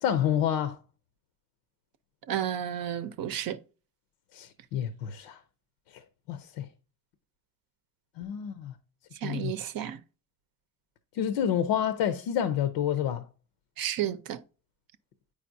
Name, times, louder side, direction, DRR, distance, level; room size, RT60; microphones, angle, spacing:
voice 1, 0.0-0.8 4.3-5.4 5.9-6.0 6.3-6.7 8.2-8.7 9.2-9.5 11.1-13.3, left 9 dB, 80° left, 0.7 m, -29 dB
voice 2, 2.3-3.6 9.2-10.0 13.8-14.4, right 10 dB, 55° right, 0.6 m, -32 dB
8.5 x 4.9 x 2.6 m
supercardioid pair, 75°, 42 cm